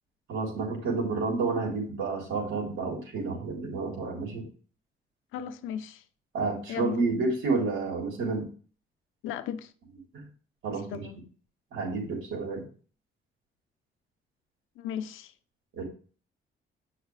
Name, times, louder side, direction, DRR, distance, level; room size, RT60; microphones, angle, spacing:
voice 1, 0.3-4.5 6.3-8.5 10.1-10.2 10.6-11.1 11.7-12.6 15.7-15.8, right 3 dB, 80° right, 3.7 m, -30 dB
voice 2, 5.3-6.0 6.7-7.0 9.2-9.7 10.9-11.2 14.8-15.3, left 9 dB, 90° left, 0.8 m, -36 dB
9.0 x 5.7 x 3.3 m
cardioid pair, 90°, 20 cm